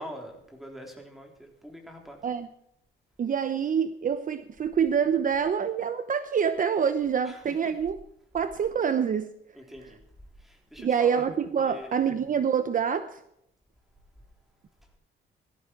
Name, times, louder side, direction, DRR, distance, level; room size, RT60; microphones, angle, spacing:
voice 1, 0.0-2.2 7.2-7.7 9.5-10.0 10.4-11.3 11.6-11.9, equal, ahead, 2 dB, 3.6 m, -44 dB
voice 2, 3.2-8.0 8.3-9.3 10.8-13.2, right 7 dB, 40° right, 11 dB, 0.9 m, -26 dB
17.5 x 14.0 x 4.6 m, 0.76 s
cardioid pair, 125°, 21 cm